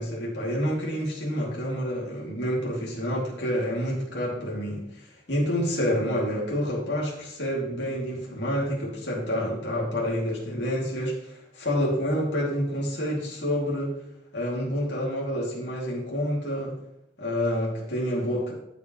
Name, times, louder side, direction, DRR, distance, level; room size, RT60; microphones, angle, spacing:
voice 1, 0.0-4.8 5.3-13.9 14.3-16.7 17.2-18.5, equal, 75° left, -3 dB, 2.7 m, -28 dB
14.5 x 5.5 x 3.2 m, 0.86 s
head